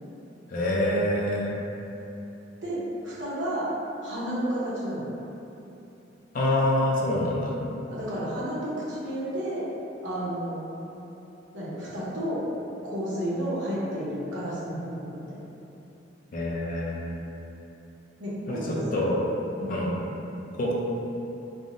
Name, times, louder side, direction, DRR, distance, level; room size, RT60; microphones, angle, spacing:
voice 1, 0.5-1.5 6.3-7.6 16.3-17.2 18.5-19.2 19.7-20.0 20.6-20.7, left 1 dB, 45° left, -4 dB, 0.4 m, -26 dB
voice 2, 2.6-3.7 4.0-5.0 7.9-9.7 10.0-10.6 11.5-12.4 12.9-15.4 18.2-18.9 19.6-19.9, equal, 80° right, -9 dB, 0.8 m, -31 dB
3.4 x 2.0 x 2.5 m, 2.9 s
head